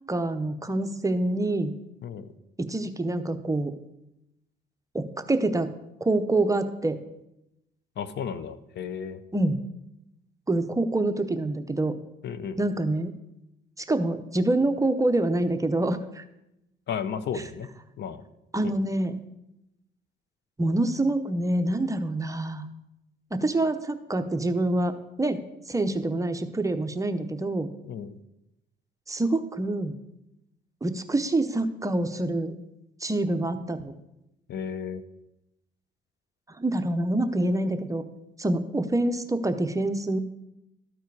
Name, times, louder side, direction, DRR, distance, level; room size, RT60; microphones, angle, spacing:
voice 1, 0.1-1.7 2.6-3.7 4.9-5.7 6.0-7.0 9.3-9.6 10.5-11.9 12.6-13.1 13.9-16.2 18.5-19.1 20.6-22.7 23.3-24.9 25.2-25.4 25.7-27.7 29.1-29.9 30.8-32.5 33.0-33.9 36.6-38.0 38.4-40.2, right 2 dB, 15° right, 8 dB, 0.7 m, -26 dB
voice 2, 8.0-9.2 12.2-12.6 16.9-17.7 18.0-18.2 18.6-18.8 27.8-28.2 34.5-35.0, left 7 dB, 60° left, 13 dB, 0.6 m, -33 dB
13.0 x 4.5 x 4.8 m, 0.88 s
cardioid pair, 90°, 20 cm